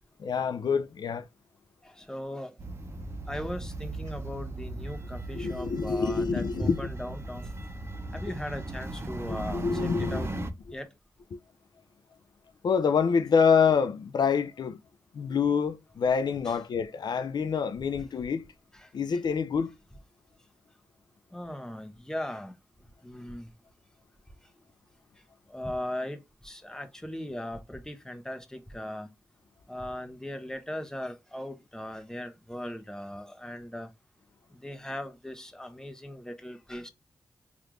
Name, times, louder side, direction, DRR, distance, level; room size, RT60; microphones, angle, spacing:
voice 1, 0.2-1.3 5.3-6.9 9.2-10.3 12.6-14.8 15.1-18.5 18.9-19.7, left 6 dB, 60° left, 0.4 m, -26 dB
voice 2, 2.0-2.5 3.3-7.5 8.1-10.3 10.7-10.9 16.5-16.6 18.7-18.9 21.3-22.5 23.0-23.5 25.5-29.1 29.7-33.9 34.6-36.9, left 1 dB, 5° left, 0.9 m, -38 dB
sound 1, 2.6-10.5, right 2 dB, 30° right, 0.7 m, -37 dB
3.3 x 2.4 x 3.0 m
cardioid pair, 45°, 8 cm